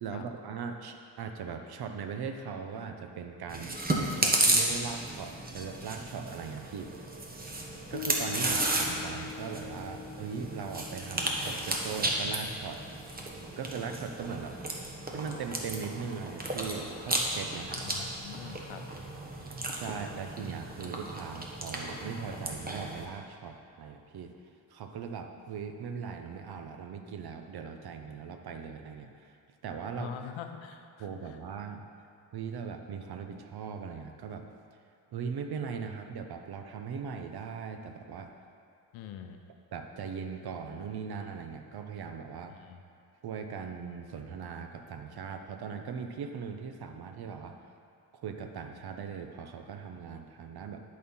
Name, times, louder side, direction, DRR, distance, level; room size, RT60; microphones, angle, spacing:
voice 1, 0.0-6.9 7.9-12.8 13.6-14.6 15.1-18.1 19.7-24.3 24.7-29.4 29.6-30.1 31.0-31.8 32.3-34.4 35.1-38.3 39.7-42.5 43.2-47.6 48.2-50.8, right 6 dB, 55° right, 6 dB, 0.8 m, -39 dB
Chewing mastication, 3.5-23.1, right 2 dB, 20° right, 1.1 m, -33 dB
Piano, 7.9-14.7, left 9 dB, 35° left, 0.4 m, -46 dB
voice 2, 17.8-18.8 30.0-31.4 38.9-39.4 42.5-42.8, left 9 dB, 80° left, 6 dB, 0.8 m, -44 dB
11.0 x 4.3 x 5.5 m, 2.5 s
cardioid pair, 110°, 46 cm